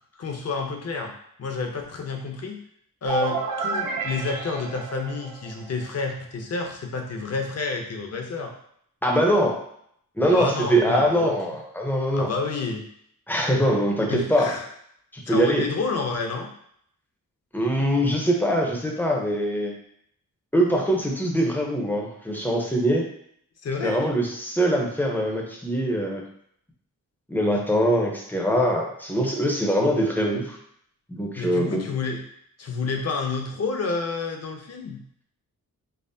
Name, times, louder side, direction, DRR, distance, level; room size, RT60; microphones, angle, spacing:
voice 1, 0.2-1.1 1.4-2.6 3.0-8.5 10.3-11.3 12.1-12.8 14.1-14.7 15.3-16.5 23.6-24.0 31.4-32.2 32.6-35.0, left 4 dB, 45° left, 3 dB, 0.6 m, -29 dB
sound 1, 3.0-5.9, right 4 dB, 85° right, 0.7 m, -30 dB
voice 2, 9.0-9.6 10.2-12.3 13.3-14.5 15.1-15.7 17.5-19.7 20.5-23.1 23.8-26.3 27.3-30.6 31.1-31.8, equal, 5° left, 0 dB, 0.6 m, -23 dB
5.3 x 2.0 x 2.6 m, 0.69 s
wide cardioid pair, 110°, 34 cm